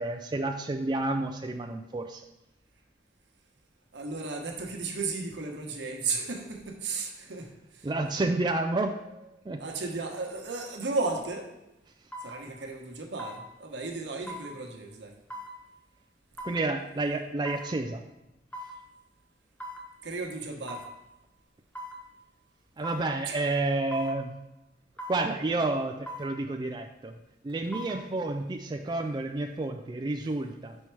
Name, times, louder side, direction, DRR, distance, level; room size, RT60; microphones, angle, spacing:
voice 1, 0.0-2.3 7.8-9.6 16.4-18.0 22.8-24.3 25.1-27.2 27.4-30.8, right 2 dB, 25° right, 4 dB, 0.3 m, -30 dB
voice 2, 3.9-7.9 9.6-11.5 12.2-15.1 20.0-20.8 23.3-23.4, right 3 dB, 80° right, 2 dB, 1.0 m, -34 dB
sound 1, 11.0-11.1 12.1-12.4 13.2-13.4 14.3-14.5 15.3-15.5 16.4-16.6 17.4-17.7 18.5-18.8 19.6-19.9 20.7-20.9 21.7-22.0 22.8-23.1 23.9-24.2 25.0-25.3 26.1-26.3 27.5-28.0 28.4-28.5, equal, 10° left, 0.7 m, -40 dB
5.5 x 4.4 x 4.7 m, 0.92 s
head